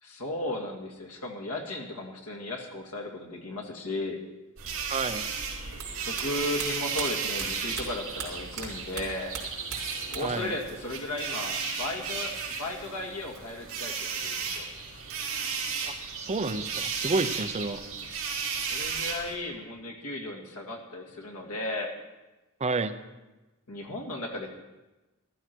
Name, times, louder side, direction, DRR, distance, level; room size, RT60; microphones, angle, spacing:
voice 1, 0.0-4.2 6.0-9.3 10.1-14.7 18.7-21.9 23.7-24.5, left 2 dB, 80° left, 2 dB, 2.1 m, -35 dB
sound 1, 4.6-19.3, right 5 dB, 65° right, 2.8 m, -34 dB
voice 2, 4.9-5.3 10.2-10.5 15.8-17.8 22.6-22.9, right 3 dB, 30° right, 9 dB, 0.7 m, -30 dB
sound 2, 5.7-8.7 8.9-10.5 10.7-11.5, right 6 dB, 80° right, 3.5 m, -38 dB
13.5 x 13.0 x 4.5 m, 1.1 s
head